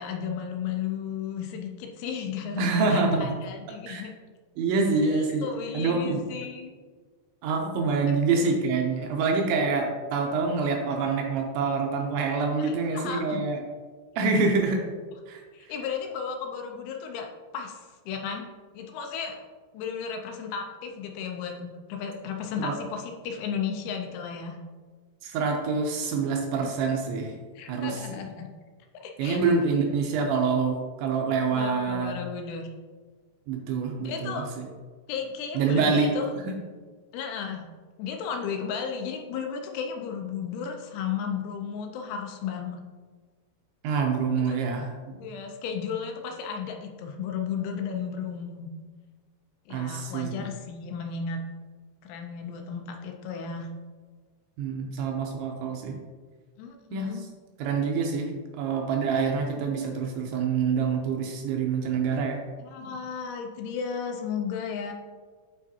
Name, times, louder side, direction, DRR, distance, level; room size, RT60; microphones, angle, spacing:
voice 1, 0.0-2.6 2.9-4.1 5.0-6.7 12.6-13.4 15.5-17.3 17.5-19.4 19.7-24.6 27.6-28.5 29.0-29.4 31.5-32.7 34.0-34.5 35.1-36.3 37.1-37.7 38.0-42.8 44.5-44.6 45.2-48.7 49.7-51.4 52.0-53.7 56.6-57.2 62.6-64.9, left 6 dB, 80° left, 3 dB, 2.9 m, -34 dB
voice 2, 2.6-3.4 3.9-4.0 4.6-5.5 5.7-6.2 7.4-13.6 14.2-14.8 15.3-15.4 22.6-22.8 25.2-27.3 27.7-28.0 29.2-32.1 33.5-34.4 35.6-36.2 43.8-45.2 49.7-50.4 54.6-56.0 56.9-57.3 57.6-58.3 58.6-62.4, right 4 dB, 80° right, 1 dB, 2.9 m, -26 dB
8.7 x 4.9 x 2.7 m, 1.5 s
omnidirectional pair, 5.6 m